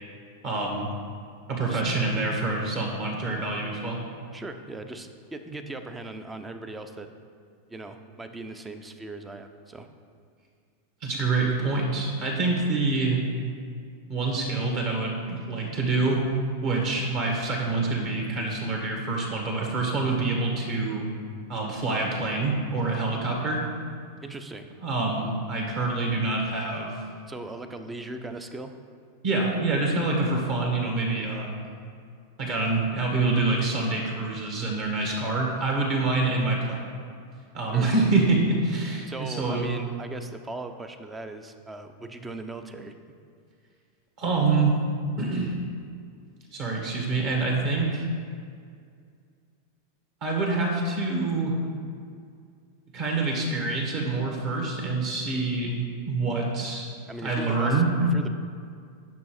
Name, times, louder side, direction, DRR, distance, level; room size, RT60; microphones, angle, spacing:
voice 1, 0.4-0.9 1.5-4.0 11.0-13.2 14.1-16.3 16.6-21.1 21.5-23.6 24.8-26.9 29.2-31.6 32.4-36.8 37.5-39.7 44.2-44.8 45.2-45.5 46.5-48.0 50.2-51.6 52.9-55.8 56.0-56.9 57.2-57.9, right 3 dB, 40° right, -1 dB, 2.0 m, -26 dB
voice 2, 4.3-7.1 7.7-9.9 24.2-24.7 27.3-28.7 37.7-37.9 39.1-42.9 57.1-57.8 58.1-58.3, right 2 dB, 10° right, 8 dB, 0.7 m, -38 dB
9.5 x 6.2 x 4.9 m, 2.2 s
figure-of-eight pair, 90°, 0 cm